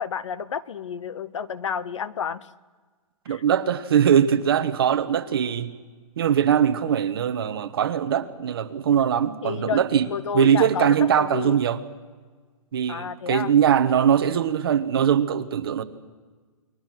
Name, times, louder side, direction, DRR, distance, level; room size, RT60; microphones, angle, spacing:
voice 1, 0.0-2.5 3.3-3.4 9.4-10.9 11.2-11.6 12.9-13.5, left 7 dB, 55° left, 16 dB, 1.0 m, -30 dB
voice 2, 3.2-5.7 6.2-10.1 10.3-11.8 12.7-15.8, right 8 dB, 40° right, 9 dB, 1.3 m, -21 dB
29.5 x 22.0 x 6.1 m, 1.4 s
hypercardioid pair, 175°, 18 cm